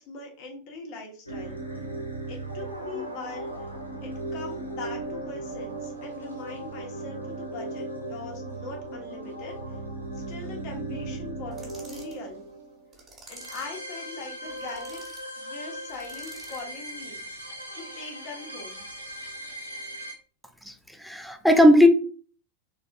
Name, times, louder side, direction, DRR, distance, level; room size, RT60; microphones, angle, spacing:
voice 1, 0.0-1.6 2.3-3.5 4.0-9.6 10.1-12.4 13.3-17.2 17.7-18.8, left 3 dB, 45° left, 1.2 m, -41 dB
sound 1, 1.3-20.1, right 1 dB, 90° right, 0.9 m, -37 dB
sound 2, 11.5-12.2 12.9-13.8 14.5-15.2 15.9-16.7, right 3 dB, 20° right, 1.5 m, -48 dB
voice 2, 21.0-21.9, left 1 dB, ahead, 0.4 m, -17 dB
3.9 x 3.3 x 2.4 m
figure-of-eight pair, 90°, 0 cm